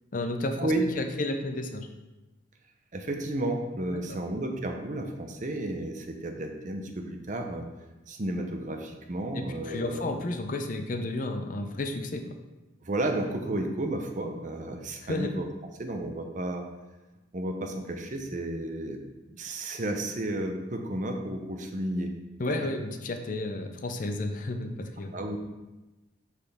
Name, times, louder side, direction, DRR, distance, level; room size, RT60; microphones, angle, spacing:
voice 1, 0.1-1.9 4.1-4.2 9.3-12.3 15.0-15.3 22.4-25.1, left 2 dB, 40° left, 6 dB, 0.5 m, -32 dB
voice 2, 2.9-7.6 8.1-10.0 12.8-15.4 15.8-16.6 17.3-19.0 19.3-22.1 25.1-25.4, right 1 dB, 40° right, 4 dB, 0.7 m, -32 dB
6.0 x 5.6 x 3.4 m, 1.1 s
head